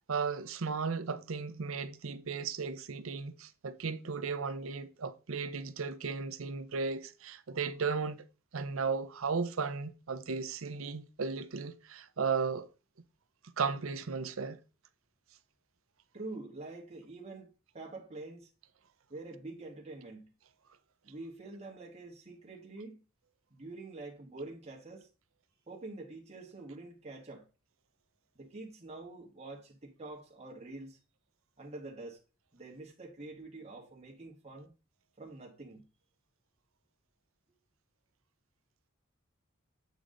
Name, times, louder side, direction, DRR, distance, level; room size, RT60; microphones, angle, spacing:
voice 1, 0.1-8.2 8.5-12.7 13.6-14.6, right 5 dB, 75° right, 0.7 m, -35 dB
voice 2, 16.1-17.5 17.7-18.5 19.1-20.3 21.0-23.0 23.5-25.1 25.7-27.5 28.4-31.0 31.6-32.2 32.5-34.7 35.2-35.9, right 2 dB, 30° right, 1.7 m, -46 dB
8.2 x 4.8 x 3.8 m
head